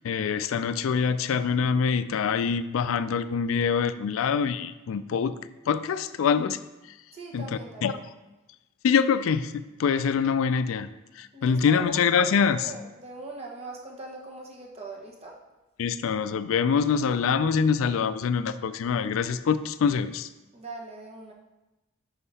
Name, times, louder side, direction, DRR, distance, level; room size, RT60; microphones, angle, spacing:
voice 1, 0.0-5.3 5.7-6.6 7.3-7.5 7.8-7.9 8.8-10.9 11.2-12.7 15.8-20.3, left 6 dB, 75° left, 13 dB, 0.3 m, -25 dB
voice 2, 7.1-8.1 11.3-11.9 12.4-15.4 16.7-17.0 20.5-21.3, right 3 dB, 30° right, -2 dB, 1.1 m, -42 dB
5.8 x 5.5 x 4.1 m, 1.0 s
head